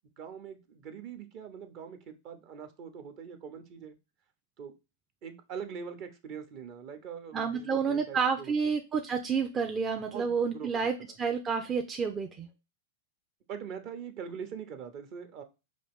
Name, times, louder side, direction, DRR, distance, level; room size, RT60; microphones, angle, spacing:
voice 1, 0.2-4.0 4.6-4.7 5.2-8.7 9.9-10.9 13.5-15.4, right 7 dB, 50° right, 0.9 m, -43 dB
voice 2, 7.3-12.5, right 5 dB, 25° right, 0.5 m, -30 dB
5.1 x 2.5 x 3.4 m
hypercardioid pair, 115°, 0 cm